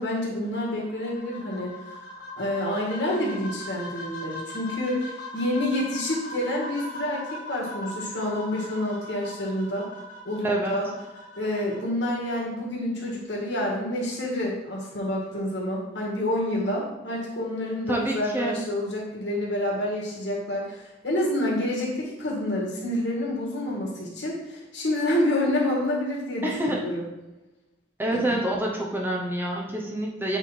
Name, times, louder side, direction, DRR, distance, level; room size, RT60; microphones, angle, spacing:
voice 1, 0.0-1.7 2.4-9.9 10.2-10.8 11.4-27.0 28.1-28.4, left 1 dB, 70° left, -4 dB, 2.2 m, -28 dB
sound 1, 0.8-11.8, left 1 dB, 50° left, 2.1 m, -40 dB
voice 2, 10.4-10.8 17.9-18.6 26.4-26.8 28.0-30.4, right 1 dB, 10° right, -1 dB, 0.9 m, -27 dB
8.1 x 3.5 x 4.3 m, 1.0 s
head